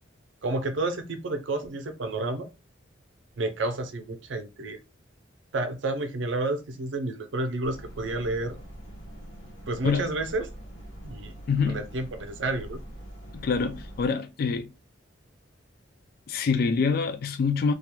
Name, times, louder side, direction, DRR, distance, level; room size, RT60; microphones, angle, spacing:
voice 1, 0.4-2.5 3.4-4.8 5.5-8.6 9.7-10.5 11.0-11.4 11.7-12.8, right 2 dB, 70° right, 0.5 m, -30 dB
sound 1, 7.6-14.1, right 1 dB, 85° left, 0.9 m, -43 dB
voice 2, 11.5-11.8 13.3-14.7 16.3-17.7, left 5 dB, 50° left, 0.3 m, -25 dB
2.3 x 2.2 x 2.9 m
head